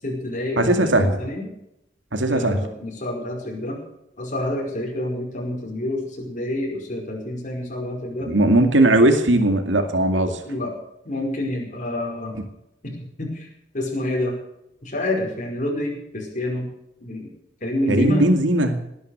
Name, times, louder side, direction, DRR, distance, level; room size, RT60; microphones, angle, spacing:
voice 1, 0.0-1.5 2.3-3.8 4.2-8.3 10.4-10.7 11.0-12.3 12.8-12.9 13.2-13.5 13.7-14.4 14.8-16.7 17.0-17.3 17.6-18.2, left 1 dB, 45° left, -1 dB, 5.3 m, -28 dB
voice 2, 0.6-1.2 2.1-2.6 8.2-10.4 17.9-18.8, right 1 dB, 90° right, 6 dB, 2.3 m, -18 dB
19.0 x 10.5 x 6.7 m, 0.82 s
head